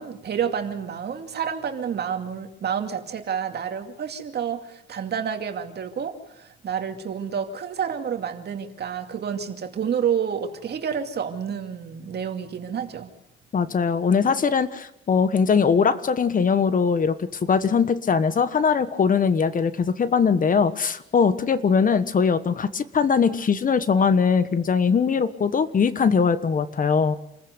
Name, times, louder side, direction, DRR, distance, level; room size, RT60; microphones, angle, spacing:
voice 1, 0.0-13.1, right 7 dB, 55° right, 5 dB, 2.5 m, -29 dB
voice 2, 13.5-27.2, left 6 dB, 45° left, 13 dB, 1.3 m, -21 dB
27.5 x 15.0 x 8.2 m, 0.83 s
cardioid pair, 90°, 20 cm